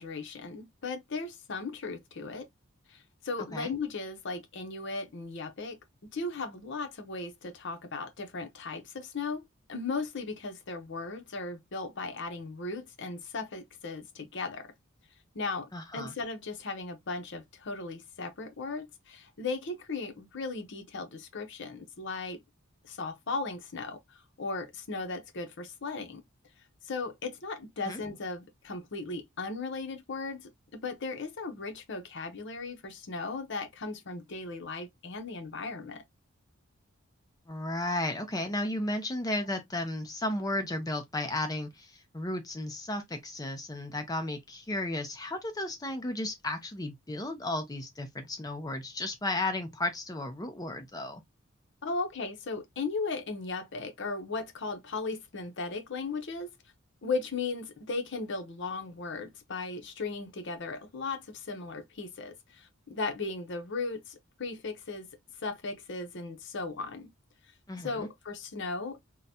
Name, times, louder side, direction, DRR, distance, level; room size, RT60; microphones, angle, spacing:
voice 1, 0.0-2.5 2.9-5.8 6.1-9.4 9.7-14.7 15.3-22.4 22.8-24.0 24.4-26.2 26.9-36.0 51.8-56.5 57.0-65.1 65.4-67.1 67.8-69.0, left 3 dB, 60° left, 0.8 m, -37 dB
voice 2, 15.7-16.1 27.8-28.0 37.5-51.2 67.7-68.1, left 1 dB, 20° left, 0.5 m, -34 dB
3.8 x 2.1 x 2.7 m
head